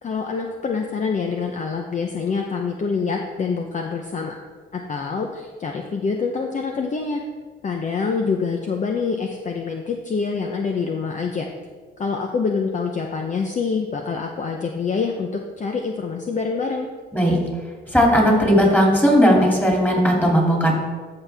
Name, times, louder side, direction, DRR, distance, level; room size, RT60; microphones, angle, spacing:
voice 1, 0.0-4.3 4.7-7.2 7.6-11.5 12.0-16.9, left 5 dB, 40° left, 3 dB, 0.7 m, -26 dB
voice 2, 17.9-20.7, equal, 10° left, -1 dB, 2.7 m, -16 dB
13.5 x 5.7 x 3.5 m, 1.5 s
cardioid pair, 90°, 20 cm